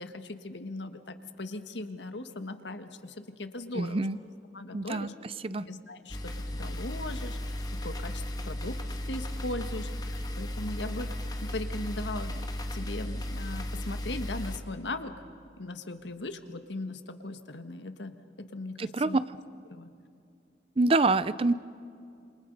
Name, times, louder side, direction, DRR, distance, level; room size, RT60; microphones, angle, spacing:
voice 1, 0.0-4.0 4.5-5.1 5.7-7.6 7.8-8.8 9.0-11.1 11.4-12.4 12.7-15.1 15.6-18.1 18.5-19.2 19.7-19.9, left 2 dB, 80° left, 8 dB, 1.5 m, -38 dB
voice 2, 3.7-4.2 4.7-5.1 5.4-5.7 18.8-19.2 20.8-21.5, right 3 dB, 30° right, 16 dB, 0.5 m, -26 dB
sound 1, 6.1-14.6, left 1 dB, 20° left, 1.4 m, -35 dB
28.0 x 27.5 x 5.4 m, 2.5 s
head